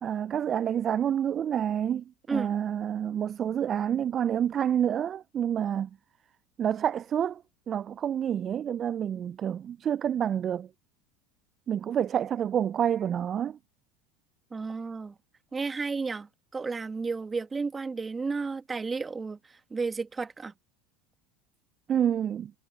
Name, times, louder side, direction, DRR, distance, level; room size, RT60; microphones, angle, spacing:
voice 1, 0.0-2.0 2.3-5.9 6.6-10.7 11.7-13.6 21.9-22.5, right 9 dB, 40° right, 0.3 m, -28 dB
voice 2, 14.5-15.1 15.5-20.5, right 4 dB, 20° right, 1.7 m, -33 dB
hypercardioid pair, 85°, 0 cm